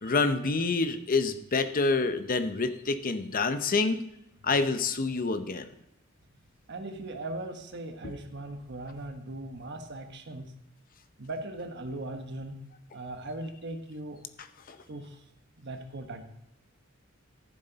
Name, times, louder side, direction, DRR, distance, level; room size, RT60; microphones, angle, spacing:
voice 1, 0.0-4.0 4.4-5.7 8.0-8.1 14.7-14.8, left 3 dB, 45° left, 10 dB, 0.7 m, -27 dB
voice 2, 6.7-10.5 11.2-12.6 12.9-14.2 14.9-15.2 15.6-16.2, right 2 dB, 55° right, 6 dB, 1.2 m, -39 dB
14.0 x 7.6 x 4.0 m, 0.85 s
head